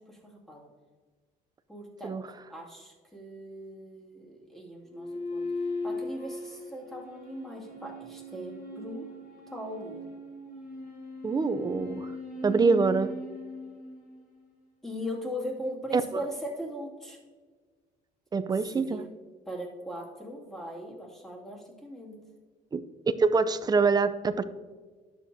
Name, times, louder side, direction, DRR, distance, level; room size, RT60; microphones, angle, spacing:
voice 1, 0.1-0.7 1.7-2.2 2.5-5.4 5.8-9.1 9.5-10.0 14.8-17.2 18.5-19.1 19.5-22.2, equal, ahead, -3 dB, 2.3 m, -39 dB
sound 1, 4.9-14.5, left 1 dB, 55° left, 2.8 m, -39 dB
voice 2, 11.2-12.1 12.4-13.1 15.9-16.2 18.3-19.0 22.7-22.8 23.2-24.4, right 4 dB, 25° right, 11 dB, 0.5 m, -25 dB
11.5 x 7.5 x 2.7 m, 1.5 s
cardioid pair, 110°, 17 cm